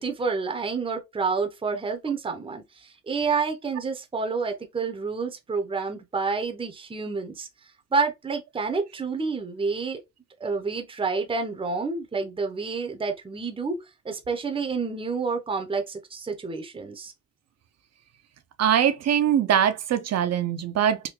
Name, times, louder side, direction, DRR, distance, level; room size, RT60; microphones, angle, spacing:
voice 1, 0.0-7.5 7.9-10.0 10.4-17.1, right 4 dB, 20° right, 0.7 m, -29 dB
voice 2, 18.6-21.0, right 9 dB, 60° right, 0.7 m, -22 dB
3.6 x 2.2 x 2.9 m
cardioid pair, 90°, 30 cm